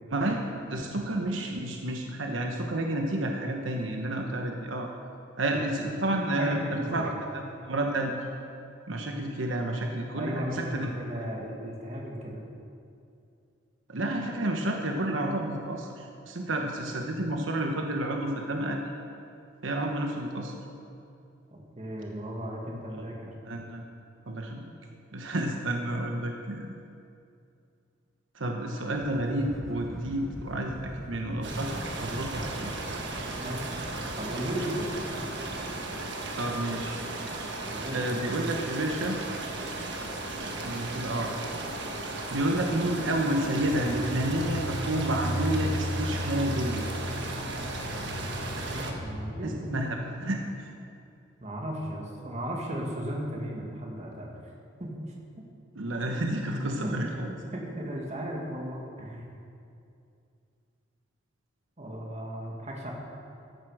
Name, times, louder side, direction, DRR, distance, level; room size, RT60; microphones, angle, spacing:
voice 1, 0.7-4.9 5.4-8.1 8.9-10.9 13.9-18.8 19.6-20.5 22.9-23.0 23.5-23.8 24.3-24.7 25.1-26.7 28.3-32.7 36.3-37.0 37.9-39.2 40.6-41.3 42.3-46.9 49.4-50.7 55.7-57.3, right 1 dB, 75° right, 2 dB, 1.1 m, -30 dB
voice 2, 6.4-7.1 10.2-12.4 21.5-23.3 33.4-33.7 34.2-34.9 37.7-38.1 47.9-48.3 48.6-49.8 51.4-54.3 54.8-55.1 56.3-57.0 57.5-59.3 61.8-62.9, equal, 35° right, -1 dB, 2.1 m, -36 dB
sound 1, 28.9-37.9, equal, ahead, 0.7 m, -43 dB
sound 2, 31.4-48.9, right 2 dB, 60° right, 1.5 m, -36 dB
sound 3, 43.6-49.5, equal, 50° left, 3.2 m, -34 dB
15.0 x 11.0 x 4.9 m, 2.5 s
head